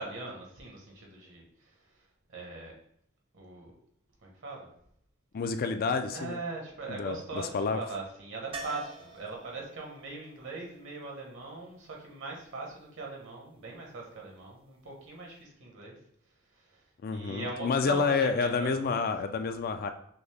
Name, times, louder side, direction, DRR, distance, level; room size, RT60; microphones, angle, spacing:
voice 1, 0.0-2.7 3.3-3.7 4.2-4.7 6.1-16.0 16.5-19.3, right 3 dB, 65° right, -1 dB, 1.2 m, -41 dB
voice 2, 5.3-6.4 6.9-7.2 7.5-7.8 17.0-19.9, left 5 dB, 45° left, 8 dB, 0.4 m, -29 dB
sound 1, 8.5-12.4 15.1-15.2 15.4-15.5, right 3 dB, 25° right, 0.5 m, -47 dB
6.1 x 2.1 x 3.4 m, 0.70 s
head